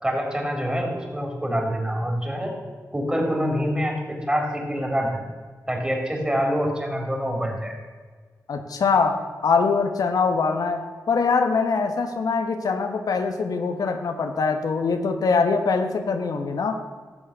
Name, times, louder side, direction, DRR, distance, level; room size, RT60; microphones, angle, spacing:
voice 1, 0.0-2.5 2.9-5.2 5.7-7.7, equal, 15° right, 1 dB, 4.0 m, -26 dB
voice 2, 8.5-16.8, left 4 dB, 90° left, 5 dB, 1.2 m, -23 dB
14.5 x 7.5 x 6.8 m, 1.5 s
cardioid pair, 65°, 6 cm